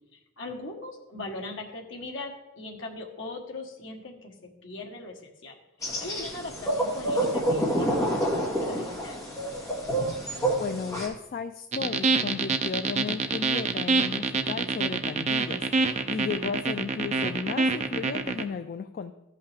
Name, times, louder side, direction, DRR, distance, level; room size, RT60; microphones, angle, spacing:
voice 1, 0.4-4.3 4.6-5.6 6.0-9.2 16.3-16.4, left 2 dB, 65° left, 1 dB, 1.4 m, -40 dB
sound 1, 5.8-11.1, right 1 dB, 15° left, 1.6 m, -28 dB
voice 2, 10.6-19.1, left 5 dB, 45° left, 9 dB, 0.3 m, -34 dB
sound 2, 11.7-18.4, right 4 dB, 35° right, 0.5 m, -26 dB
14.0 x 5.6 x 3.4 m, 0.96 s
head